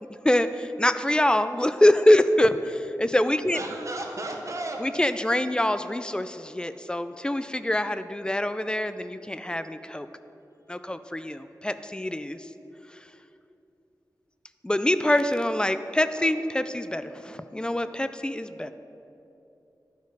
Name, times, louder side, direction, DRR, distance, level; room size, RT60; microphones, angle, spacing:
voice 1, 0.2-3.6 4.8-10.1 10.7-12.5 14.6-18.7, left 1 dB, 10° left, 11 dB, 0.3 m, -24 dB
voice 2, 3.5-5.1 15.9-16.3, right 2 dB, 45° right, 2 dB, 1.0 m, -35 dB
11.5 x 4.6 x 4.6 m, 2.9 s
wide cardioid pair, 85°, 7 cm